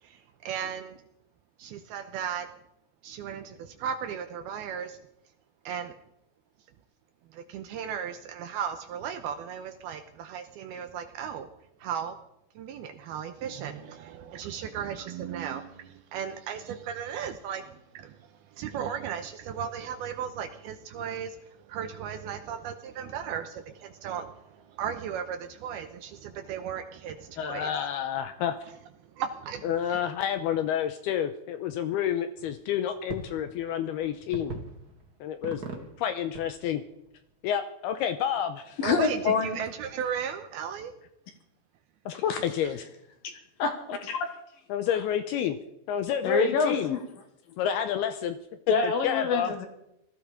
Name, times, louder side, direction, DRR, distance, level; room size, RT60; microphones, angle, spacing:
voice 1, 0.0-1.0 1.6-2.5 3.0-5.0 5.7-6.0 7.3-11.5 11.8-12.2 12.6-27.7 29.1-30.0 38.8-40.9, right 8 dB, 75° right, 8 dB, 2.5 m, -36 dB
voice 2, 27.4-28.6 29.6-34.6 35.2-35.6 36.0-36.8 37.4-38.8 42.1-42.8 44.7-45.6 45.9-46.9 47.6-48.4 48.8-49.5, left 9 dB, 80° left, 9 dB, 2.4 m, -29 dB
Fireworks and Blowholes in Streaky Bay for New Year, 32.3-37.4, right 4 dB, 35° right, 1.5 m, -43 dB
voice 3, 38.8-39.6 42.3-42.4 43.2-43.3 43.6-44.3 46.2-47.0 48.7-49.7, left 4 dB, 60° left, 6 dB, 2.9 m, -26 dB
19.5 x 14.5 x 5.1 m, 0.82 s
omnidirectional pair, 5.2 m